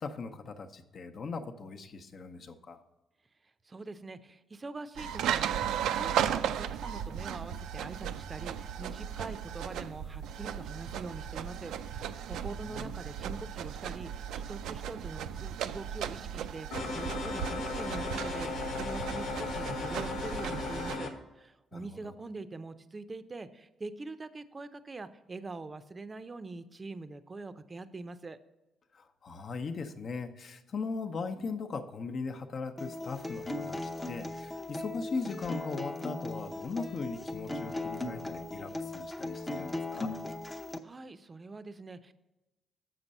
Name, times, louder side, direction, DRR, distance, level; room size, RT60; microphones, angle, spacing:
voice 1, 0.0-2.8 12.3-12.9 21.7-22.1 28.9-40.1, left 4 dB, 50° left, 6 dB, 0.8 m, -39 dB
voice 2, 3.6-28.4 40.8-42.1, right 3 dB, 30° right, 12 dB, 0.5 m, -44 dB
sound 1, 5.0-21.0, right 9 dB, 85° right, 0.4 m, -36 dB
sound 2, 16.7-21.1, left 3 dB, 85° left, 1.3 m, -36 dB
Acoustic guitar, 32.8-40.8, left 2 dB, 15° left, 0.7 m, -38 dB
7.6 x 5.9 x 5.4 m, 1.0 s
cardioid pair, 90°, 0 cm